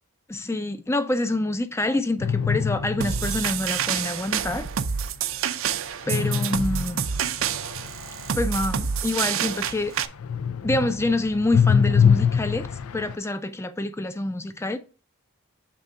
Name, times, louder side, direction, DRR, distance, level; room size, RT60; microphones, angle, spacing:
voice 1, 0.3-4.7 6.1-7.0 8.3-9.9 10.6-12.7 12.9-14.8, left 2 dB, 10° left, 0.4 m, -26 dB
sound 1, 2.2-3.9 6.1-9.9 10.2-13.2, left 7 dB, 85° left, 0.4 m, -24 dB
sound 2, 3.0-10.1, right 8 dB, 70° right, 0.5 m, -28 dB
6.9 x 3.6 x 5.2 m
head